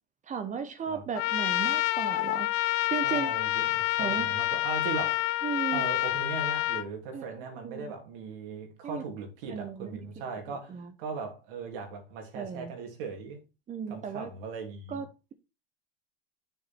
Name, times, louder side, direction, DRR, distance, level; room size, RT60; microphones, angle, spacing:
voice 1, 0.3-2.5 2.9-3.3 4.0-4.3 5.4-5.8 7.1-7.9 8.8-9.0 9.5-10.0 10.3-10.4 10.7-10.9 12.3-12.7 13.7-14.3 14.9-15.3, right 6 dB, 25° right, 1.0 m, -35 dB
Trumpet, 1.2-6.9, left 17 dB, 50° left, 0.8 m, -28 dB
voice 2, 3.0-5.4 5.7-13.4 13.9-15.0, right 4 dB, 65° right, 2.9 m, -39 dB
7.0 x 6.2 x 4.3 m
hypercardioid pair, 105°, 29 cm